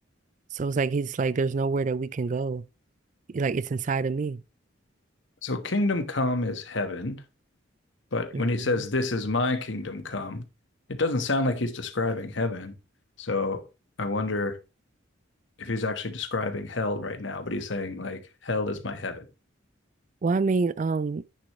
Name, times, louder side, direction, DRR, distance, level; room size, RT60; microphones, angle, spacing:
voice 1, 0.5-2.6 3.3-4.4 8.3-8.8 20.2-21.2, right 4 dB, 40° right, 0.4 m, -27 dB
voice 2, 5.4-7.2 8.1-10.4 10.9-12.7 13.2-13.7 14.0-14.6 15.6-19.3, left 2 dB, 70° left, 1.3 m, -28 dB
9.9 x 6.6 x 3.1 m
head